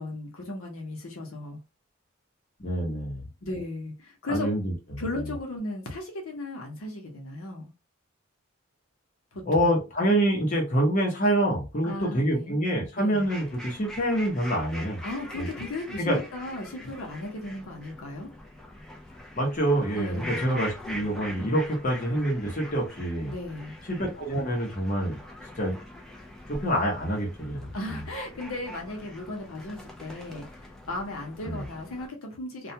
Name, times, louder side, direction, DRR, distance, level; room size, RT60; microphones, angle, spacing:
voice 1, 0.0-1.6 3.4-4.5 5.0-7.7 9.3-9.8 11.8-12.6 12.9-13.2 15.0-18.3 19.9-20.5 23.3-23.8 27.7-32.7, left 2 dB, 90° left, 0.8 m, -36 dB
voice 2, 2.6-3.2 4.3-4.7 9.5-15.0 15.3-15.5 16.0-16.2 19.3-23.3 23.9-25.2 25.6-25.8 26.5-28.0 31.4-31.6, right 1 dB, 35° left, 0.8 m, -26 dB
sound 1, 13.2-32.1, left 1 dB, 5° left, 0.4 m, -43 dB
2.3 x 2.2 x 2.7 m
head